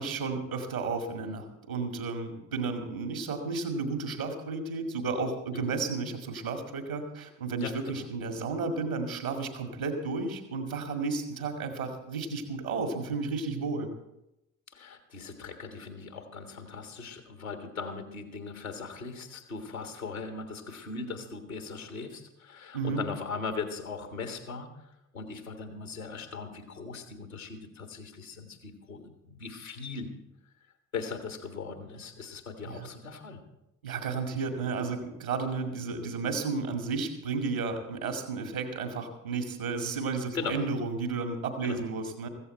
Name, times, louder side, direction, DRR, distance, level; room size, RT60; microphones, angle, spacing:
voice 1, 0.0-13.9 22.7-23.0 32.7-32.9 33.8-42.3, right 4 dB, 85° right, 5 dB, 2.0 m, -33 dB
voice 2, 7.6-8.0 14.7-24.7 25.1-30.1 30.9-33.4 40.3-40.6 41.6-41.8, left 4 dB, 85° left, 5 dB, 1.6 m, -39 dB
15.0 x 14.5 x 4.4 m, 0.89 s
figure-of-eight pair, 50°, 41 cm